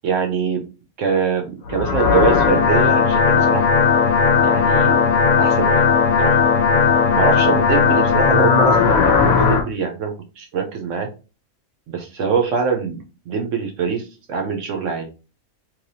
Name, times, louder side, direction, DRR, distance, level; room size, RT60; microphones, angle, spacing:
voice 1, 0.0-0.6 1.0-3.6 4.4-5.1 5.4-5.8 6.2-6.4 7.1-11.1 11.9-13.0 13.3-15.1, right 6 dB, 65° right, 4 dB, 0.9 m, -23 dB
sound 1, 1.7-9.6, left 5 dB, 75° left, 1.1 m, -16 dB
3.2 x 3.0 x 2.6 m, 0.32 s
omnidirectional pair, 1.5 m